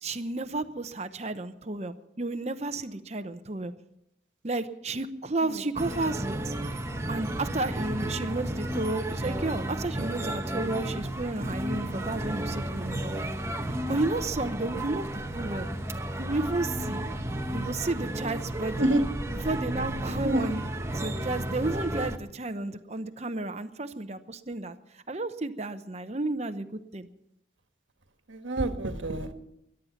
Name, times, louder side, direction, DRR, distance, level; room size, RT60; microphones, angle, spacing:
voice 1, 0.0-3.7 4.4-6.5 7.1-13.2 13.9-15.1 15.3-15.7 16.2-17.0 17.5-18.9 19.4-20.6 20.9-26.7 26.9-27.1, right 2 dB, 35° right, 10 dB, 0.9 m, -32 dB
sound 1, 5.8-22.2, right 1 dB, 15° right, 0.9 m, -33 dB
voice 2, 28.3-29.3, right 1 dB, 80° right, 7 dB, 1.5 m, -27 dB
22.0 x 11.0 x 5.9 m, 0.81 s
head